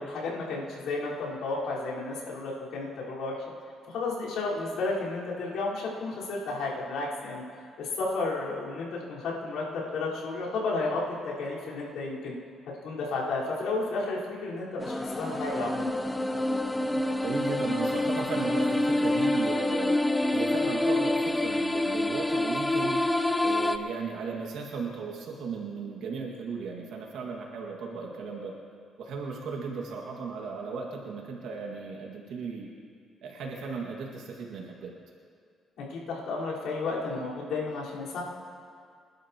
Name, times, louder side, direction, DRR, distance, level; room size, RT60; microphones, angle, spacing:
voice 1, 0.0-3.4 3.9-7.4 7.8-12.4 12.8-16.0 35.8-38.2, left 3 dB, 85° left, -7 dB, 4.4 m, -32 dB
sound 1, 14.8-23.8, left 1 dB, 10° left, 0.6 m, -27 dB
voice 2, 17.2-20.0 20.3-23.0 23.4-28.5 29.0-32.7 33.2-34.9, right 4 dB, 80° right, -1 dB, 1.9 m, -36 dB
26.0 x 11.5 x 3.0 m, 2.2 s
cardioid pair, 90°, 0 cm